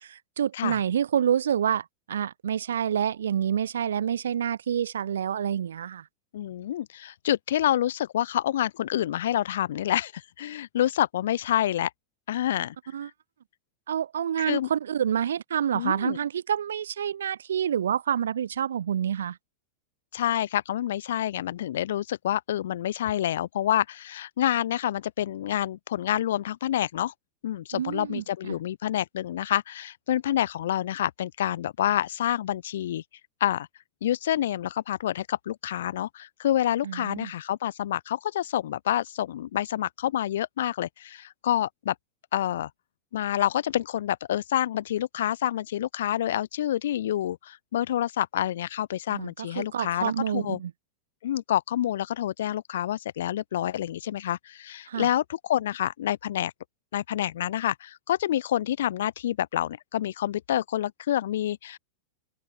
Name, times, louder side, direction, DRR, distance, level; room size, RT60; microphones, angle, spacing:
voice 1, 0.0-6.0 12.9-13.1 13.9-19.4 27.7-28.6 36.8-37.3 49.1-50.7 54.9-55.1, right 9 dB, 65° right, 1.1 m, -28 dB
voice 2, 6.3-11.9 12.3-12.7 13.0-13.1 14.4-14.7 15.7-16.2 20.1-27.1 27.4-33.0 33.4-33.7 34.0-41.9 42.3-42.7 43.1-50.6 51.2-56.5 56.9-61.8, left 11 dB, 60° left, 1.0 m, -28 dB
figure-of-eight pair, 90°, 0 cm